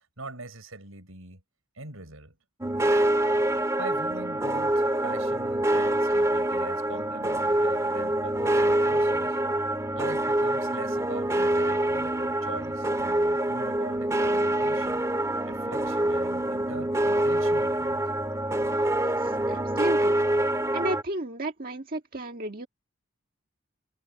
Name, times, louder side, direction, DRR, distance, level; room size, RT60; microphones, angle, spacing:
voice 1, 0.0-1.4 1.7-2.4 3.8-9.4 10.0-15.1 15.5-18.0, right 2 dB, 80° right, 6.4 m, -42 dB
sound 1, 2.6-21.0, right 1 dB, 15° right, 1.8 m, -25 dB
voice 2, 19.0-20.2 20.7-22.7, right 1 dB, 45° right, 1.8 m, -33 dB
head